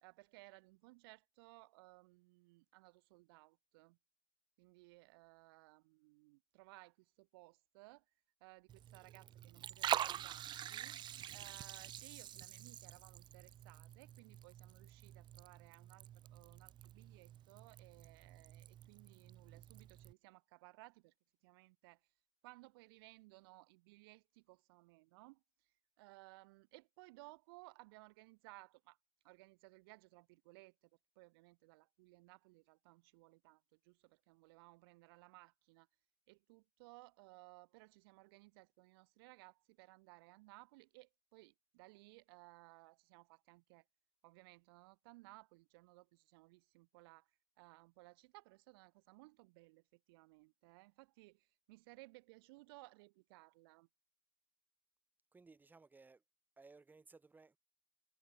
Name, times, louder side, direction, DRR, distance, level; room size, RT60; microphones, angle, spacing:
voice 1, 0.0-4.0 4.6-8.0 8.4-11.0 11.3-21.1 21.4-22.0 22.4-25.4 26.0-29.0 29.2-30.9 31.1-35.9 36.3-43.8 44.2-47.3 47.6-53.9, right 24 dB, 80° right, 1.5 m, -61 dB
Liquid, 8.7-20.1, right 11 dB, 40° right, 0.8 m, -46 dB
voice 2, 55.3-56.2 56.6-57.6, right 4 dB, 15° right, 3.0 m, -61 dB
supercardioid pair, 120°, 12 cm